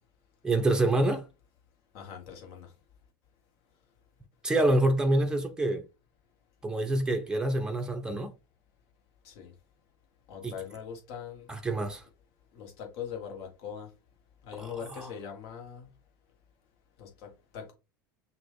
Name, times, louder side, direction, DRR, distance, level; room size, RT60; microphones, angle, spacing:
voice 1, 0.4-1.3 4.4-5.8 6.6-8.3 10.4-10.5 11.5-12.0 14.6-14.7, right 2 dB, 5° right, 0.8 m, -26 dB
voice 2, 1.9-2.7 9.2-9.5 10.3-11.5 12.5-13.9 14.4-15.9 17.0-17.7, left 7 dB, 55° left, 1.8 m, -41 dB
5.8 x 2.6 x 3.4 m
figure-of-eight pair, 80°, 11 cm